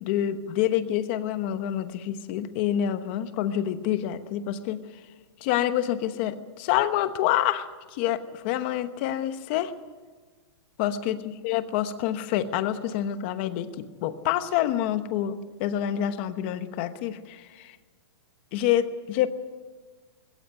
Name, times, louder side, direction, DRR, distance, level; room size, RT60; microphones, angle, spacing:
voice 1, 0.0-4.8 5.4-9.7 10.8-17.8 18.5-19.3, left 11 dB, 25° left, 11 dB, 1.0 m, -27 dB
20.5 x 16.5 x 9.5 m, 1.4 s
hypercardioid pair, 180°, 14 cm